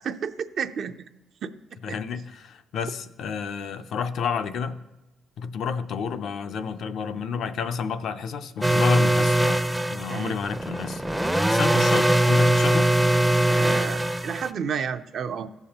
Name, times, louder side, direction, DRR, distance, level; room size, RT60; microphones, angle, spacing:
voice 1, 0.0-0.9 10.1-10.4 13.5-15.5, right 7 dB, 60° right, 0.5 m, -30 dB
voice 2, 1.8-4.8 5.4-9.6 9.9-11.0 11.5-12.9, left 6 dB, 70° left, 0.5 m, -30 dB
sound 1, 8.6-14.5, right 1 dB, 5° right, 0.4 m, -22 dB
15.0 x 6.8 x 2.9 m
cardioid pair, 90°, 0 cm